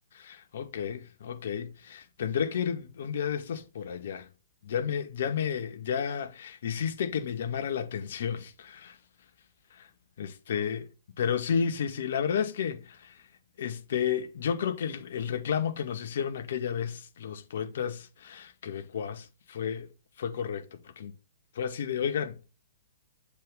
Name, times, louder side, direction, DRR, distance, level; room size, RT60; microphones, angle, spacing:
voice 1, 0.2-4.3 4.6-9.0 9.8-9.9 10.2-10.9 11.2-13.2 13.6-19.9 20.2-21.1 21.6-22.4, left 7 dB, 55° left, 0.7 m, -32 dB
7.6 x 3.5 x 3.8 m
figure-of-eight pair, 115°, 0 cm